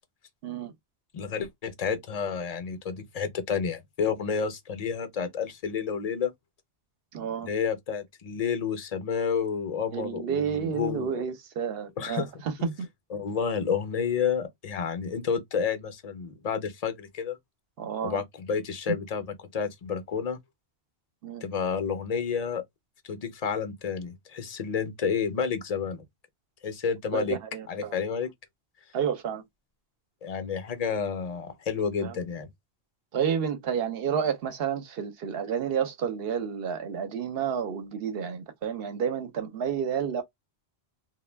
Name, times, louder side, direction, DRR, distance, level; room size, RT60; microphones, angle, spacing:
voice 1, 1.1-6.3 7.4-11.2 12.0-12.7 13.1-17.4 18.0-20.4 21.4-22.6 23.0-26.0 26.6-27.4 27.7-28.3 30.2-32.5, left 6 dB, 45° left, 0.6 m, -30 dB
voice 2, 7.1-7.5 9.9-12.5 17.8-18.2 21.2-21.4 27.1-27.9 28.9-29.4 32.0-32.1 33.1-40.2, right 7 dB, 65° right, 0.8 m, -30 dB
2.2 x 2.1 x 3.3 m
omnidirectional pair, 1.1 m